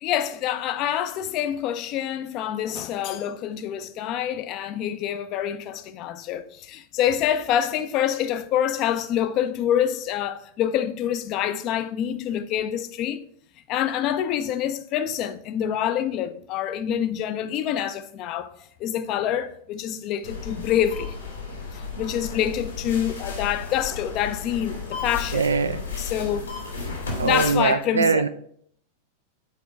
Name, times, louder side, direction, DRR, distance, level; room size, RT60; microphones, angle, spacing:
voice 1, 0.0-13.2 13.7-18.5 18.8-21.2 21.7-25.5 26.0-26.5 27.2-28.3, left 10 dB, 40° left, 0.5 m, -26 dB
sound 1, 20.2-27.6, left 4 dB, 75° left, 1.9 m, -34 dB
voice 2, 25.3-25.8 27.2-28.3, right 4 dB, 70° right, 0.4 m, -22 dB
8.2 x 4.5 x 3.4 m
figure-of-eight pair, 90°, 0 cm